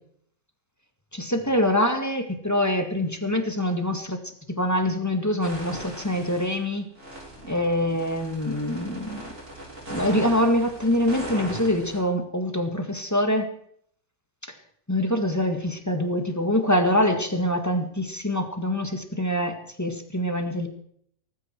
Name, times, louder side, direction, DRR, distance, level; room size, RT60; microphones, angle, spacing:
voice 1, 1.1-4.2 4.5-6.9 7.4-9.2 9.9-13.5 14.4-14.5 14.9-20.7, left 1 dB, 10° left, 6 dB, 1.8 m, -25 dB
sound 1, 5.4-6.6 6.9-12.0, right 1 dB, 50° right, 6.2 m, -38 dB
18.0 x 15.0 x 4.6 m, 0.64 s
omnidirectional pair, 1.7 m